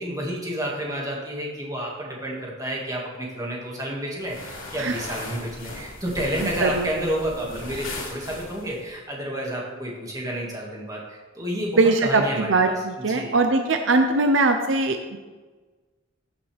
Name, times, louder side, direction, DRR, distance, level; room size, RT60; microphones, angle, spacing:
voice 1, 0.0-12.7 13.1-13.3, equal, 20° right, -3 dB, 2.0 m, -30 dB
sound 1, 4.2-8.9, left 2 dB, 85° left, 3.1 m, -37 dB
voice 2, 6.4-6.9 11.8-15.2, right 3 dB, 70° right, 6 dB, 0.7 m, -21 dB
15.0 x 6.7 x 3.5 m, 1.3 s
head